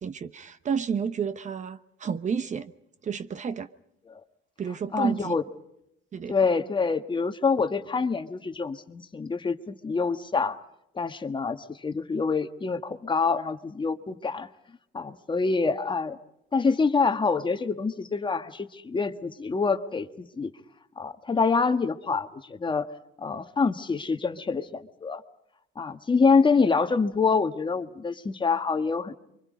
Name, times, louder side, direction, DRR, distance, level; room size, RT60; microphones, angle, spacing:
voice 1, 0.0-2.7 3.0-3.7 4.6-5.3 6.1-6.4, right 6 dB, 35° right, 1.0 m, -30 dB
voice 2, 4.9-5.4 6.3-10.6 10.9-14.5 14.9-16.2 16.5-20.5 21.0-22.9 23.2-25.2 25.8-29.1, left 4 dB, 25° left, 1.4 m, -26 dB
29.0 x 24.5 x 5.2 m
cardioid pair, 115°, 21 cm